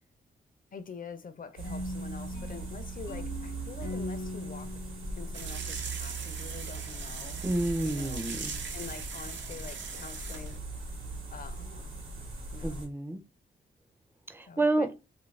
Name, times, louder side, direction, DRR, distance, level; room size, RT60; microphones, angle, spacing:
voice 1, 0.7-4.7 5.2-7.4 7.8-8.2 8.7-10.6 11.3-11.9 12.5-12.9 14.5-14.9, left 5 dB, 45° left, 0.5 m, -45 dB
sound 1, 1.6-6.5, left 1 dB, 70° left, 0.9 m, -41 dB
sound 2, 1.6-12.9, right 3 dB, 80° right, 1.0 m, -40 dB
sound 3, 5.3-10.6, right 5 dB, 65° right, 0.6 m, -40 dB
voice 2, 7.4-8.5 12.6-13.2 14.3-14.9, right 2 dB, 10° right, 0.5 m, -29 dB
2.5 x 2.3 x 3.2 m
cardioid pair, 55°, 20 cm